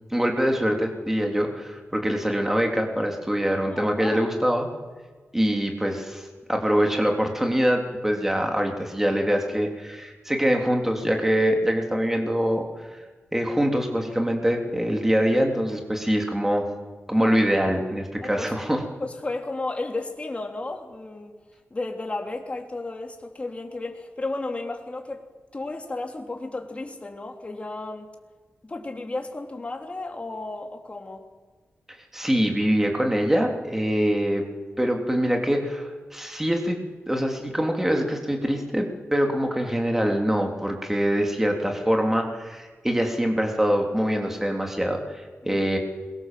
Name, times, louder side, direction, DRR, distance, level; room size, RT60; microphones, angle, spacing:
voice 1, 0.1-4.7 5.3-12.6 12.9-13.0 13.3-16.7 17.1-18.8 32.1-34.5 34.8-36.8 37.1-45.8, equal, 10° right, 2 dB, 3.6 m, -24 dB
voice 2, 3.5-4.3 17.2-17.5 18.2-18.5 19.0-21.3 21.7-25.3 25.5-28.1 28.6-31.3 45.4-45.7, left 2 dB, 30° left, 3 dB, 3.5 m, -33 dB
27.5 x 23.0 x 7.7 m, 1.4 s
wide cardioid pair, 125°, 4 cm